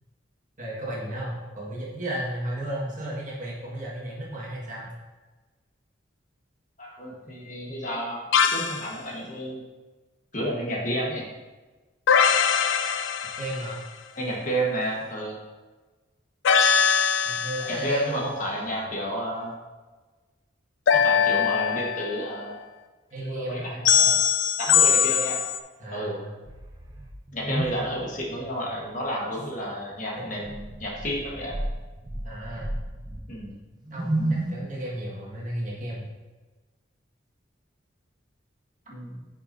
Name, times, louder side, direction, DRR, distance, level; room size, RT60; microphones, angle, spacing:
voice 1, 0.6-4.9 13.4-13.8 17.3-18.3 18.6-19.1 23.1-23.8 25.8-26.4 30.2-30.3 32.2-32.7 33.9-36.1, right 1 dB, 40° right, -5 dB, 1.8 m, -34 dB
voice 2, 6.8-9.6 10.3-11.3 14.2-15.3 17.7-19.5 20.9-22.5 23.2-24.2 24.6-25.4 25.9-26.2 27.3-31.5 33.3-33.6 38.9-39.3, equal, 40° left, -2 dB, 1.5 m, -31 dB
sound 1, 8.3-8.9 12.1-13.8 16.5-17.9 20.9-22.3 23.9-25.6, left 7 dB, 80° left, 0.4 m, -21 dB
sound 2, 26.5-28.9 29.2-29.3 30.4-33.5 33.8-34.5, right 1 dB, 20° right, 0.6 m, -32 dB
8.5 x 5.6 x 2.7 m, 1.3 s
head